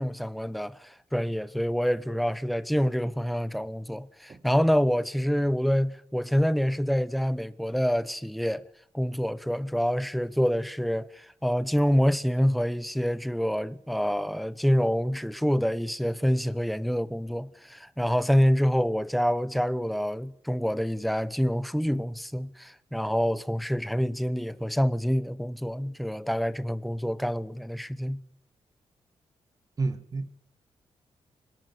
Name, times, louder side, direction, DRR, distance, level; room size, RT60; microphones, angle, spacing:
voice 1, 0.0-8.6 8.9-28.2, equal, ahead, 1.0 m, -27 dB
voice 2, 29.8-30.3, right 3 dB, 35° right, 1.8 m, -30 dB
24.5 x 20.0 x 8.3 m
wide cardioid pair, 130°, 11 cm